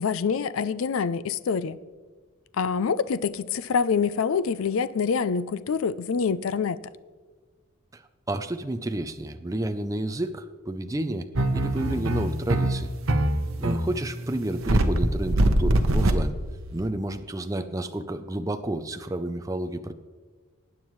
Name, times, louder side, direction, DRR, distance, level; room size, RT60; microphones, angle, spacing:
voice 1, 0.0-1.8 2.6-6.8, left 6 dB, 80° left, 0.4 m, -26 dB
voice 2, 8.3-12.9 13.6-16.3 16.7-19.9, right 1 dB, 15° right, 0.5 m, -30 dB
sound 1, 11.4-16.9, right 1 dB, 85° right, 1.0 m, -23 dB
19.0 x 9.1 x 3.1 m
head